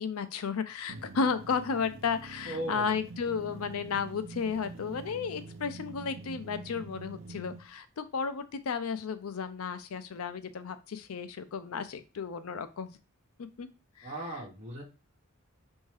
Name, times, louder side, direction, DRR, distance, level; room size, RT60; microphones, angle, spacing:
voice 1, 0.0-13.0 13.6-13.7 14.0-14.4, left 5 dB, 80° left, 11 dB, 0.5 m, -33 dB
sound 1, 0.9-7.7, right 3 dB, 65° right, 0.5 m, -46 dB
voice 2, 2.5-2.9 14.0-14.8, right 1 dB, 35° right, -4 dB, 1.1 m, -37 dB
4.5 x 2.7 x 3.2 m, 0.31 s
head